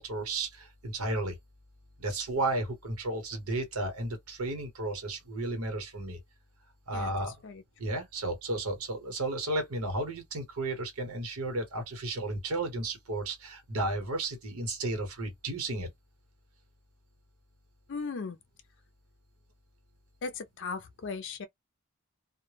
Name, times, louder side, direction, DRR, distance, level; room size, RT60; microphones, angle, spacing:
voice 1, 0.0-1.3 2.0-6.2 6.9-7.3 7.8-15.9, right 2 dB, 85° right, 1.0 m, -33 dB
voice 2, 17.9-18.4 20.2-21.5, left 4 dB, 55° left, 0.4 m, -37 dB
2.1 x 2.0 x 3.2 m
head